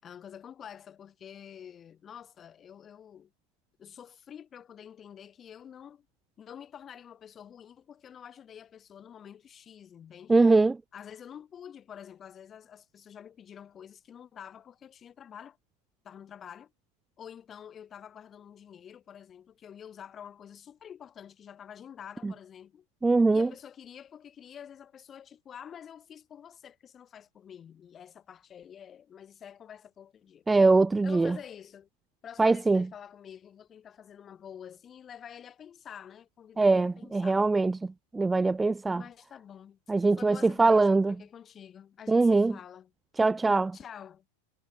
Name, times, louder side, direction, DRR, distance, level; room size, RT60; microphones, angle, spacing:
voice 1, 0.0-3.3 3.8-6.1 6.4-10.3 10.9-15.6 16.0-16.7 17.2-22.8 23.3-30.4 31.0-31.9 32.2-37.4 38.9-39.8 40.1-42.9 43.7-44.2, left 8 dB, 25° left, 6.7 m, -48 dB
voice 2, 10.3-10.8 23.0-23.5 30.5-31.3 32.4-32.8 36.6-37.8 38.1-39.0 39.9-41.1 42.1-42.5 43.2-43.8, right 3 dB, 10° right, 0.4 m, -22 dB
figure-of-eight pair, 90°, 0 cm